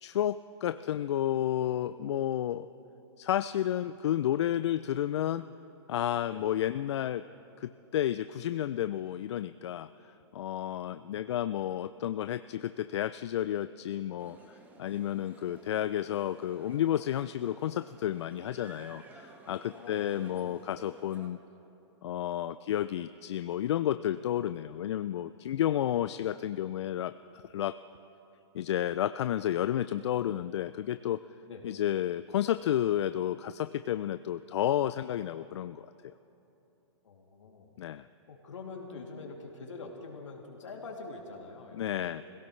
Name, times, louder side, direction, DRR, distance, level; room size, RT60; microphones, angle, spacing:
voice 1, 0.0-2.7 3.2-5.5 5.9-7.2 7.6-21.4 22.0-27.8 28.5-31.2 31.6-35.9 37.8-38.1 41.7-42.2, left 11 dB, 65° left, 13 dB, 0.4 m, -31 dB
voice 2, 10.9-11.3 19.7-20.5 31.5-31.6 37.0-37.7 38.3-42.2, left 3 dB, 85° left, 0 dB, 2.7 m, -45 dB
sound 1, 14.2-21.3, right 2 dB, 10° right, 1.3 m, -54 dB
25.0 x 17.0 x 3.2 m, 2.9 s
hypercardioid pair, 140°, 15 cm